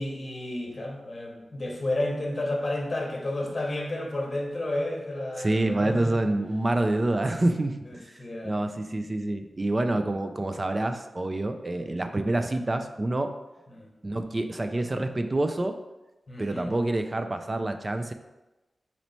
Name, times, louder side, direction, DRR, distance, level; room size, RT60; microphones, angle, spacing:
voice 1, 0.0-6.1 8.2-8.6 11.9-12.0 13.7-13.9 16.3-16.7, left 1 dB, 35° left, 0 dB, 0.9 m, -31 dB
voice 2, 5.4-13.4 14.0-15.8 16.4-18.1, right 2 dB, 25° right, 7 dB, 0.3 m, -27 dB
4.2 x 3.0 x 4.1 m, 1.0 s
wide cardioid pair, 130°, 0 cm